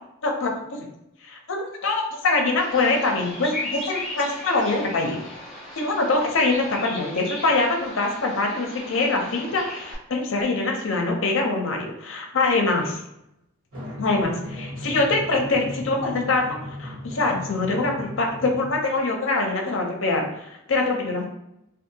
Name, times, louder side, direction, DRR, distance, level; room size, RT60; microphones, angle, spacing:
voice 1, 0.2-0.8 1.2-5.2 5.8-13.0 14.0-21.2, left 3 dB, 60° left, 2 dB, 0.5 m, -24 dB
Bird vocalization bird call bird song, 2.6-9.9, left 1 dB, ahead, 0.6 m, -37 dB
Drum, 13.7-18.8, left 1 dB, 80° right, 1.1 m, -36 dB
2.6 x 2.4 x 2.7 m, 0.85 s
head